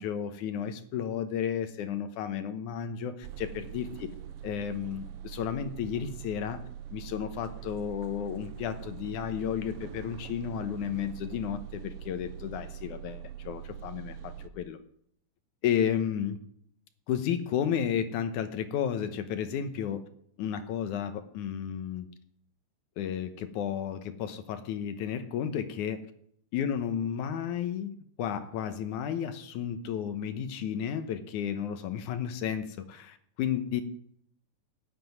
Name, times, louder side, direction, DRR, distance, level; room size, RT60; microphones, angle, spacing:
voice 1, 0.0-3.1 3.4-4.1 4.4-6.6 6.9-14.8 15.6-16.4 17.1-20.0 20.4-22.1 23.0-26.0 26.5-33.8, left 8 dB, 80° left, 9 dB, 2.5 m, -32 dB
sound 1, 3.2-14.5, right 10 dB, 75° right, 1.4 m, -43 dB
13.0 x 7.6 x 9.4 m, 0.67 s
omnidirectional pair, 3.5 m